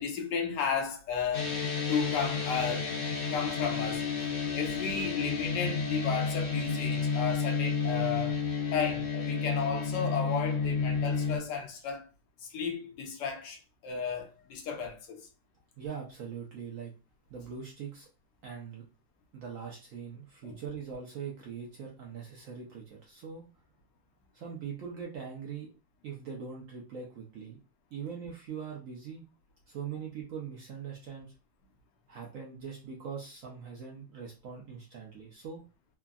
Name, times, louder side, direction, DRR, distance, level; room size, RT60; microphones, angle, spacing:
voice 1, 0.0-1.5 1.9-2.9 3.3-4.1 4.5-8.4 8.7-12.1 12.5-13.6 13.8-15.3 20.5-20.6, left 6 dB, 75° left, 1.2 m, -33 dB
sound 1, 1.3-11.4, left 5 dB, 60° left, 0.9 m, -31 dB
voice 2, 15.8-16.9 17.3-18.1 18.4-18.8 19.3-23.4 24.3-25.7 26.0-27.6 27.9-29.2 29.7-31.3 32.1-35.6, right 6 dB, 65° right, 0.9 m, -42 dB
3.5 x 2.0 x 2.3 m
omnidirectional pair, 1.9 m